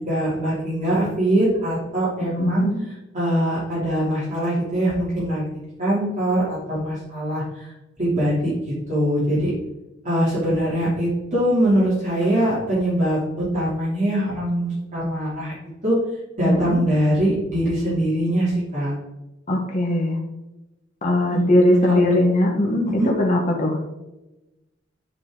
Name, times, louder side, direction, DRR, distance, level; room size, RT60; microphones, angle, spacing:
voice 1, 0.0-2.7 3.1-5.4 5.8-7.7 8.0-8.5 8.9-9.5 10.0-15.5 15.8-16.0 16.4-18.9 21.3-22.0 23.0-23.1, right 1 dB, 40° right, -9 dB, 2.9 m, -22 dB
voice 2, 2.2-2.8 16.4-16.8 19.5-20.2 21.0-22.9 23.2-23.8, left 1 dB, 40° left, -1 dB, 1.3 m, -20 dB
10.0 x 4.4 x 3.8 m, 0.98 s
head